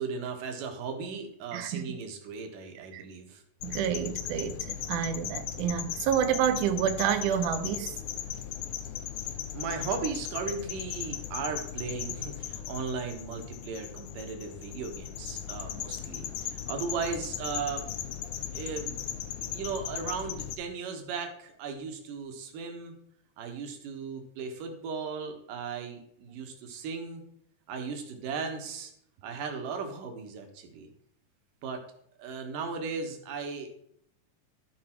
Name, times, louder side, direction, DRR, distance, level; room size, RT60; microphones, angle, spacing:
voice 1, 0.0-3.4 9.5-17.9 18.5-22.9 23.4-27.2 27.7-28.9 29.2-30.9 31.6-31.8 32.2-33.8, right 5 dB, 65° right, 2.7 m, -36 dB
voice 2, 1.5-2.0 2.9-3.0 3.6-8.0, right 9 dB, 80° right, 1.8 m, -29 dB
sound 1, 3.6-20.6, left 10 dB, 85° left, 1.7 m, -37 dB
13.5 x 5.2 x 4.4 m
omnidirectional pair, 4.4 m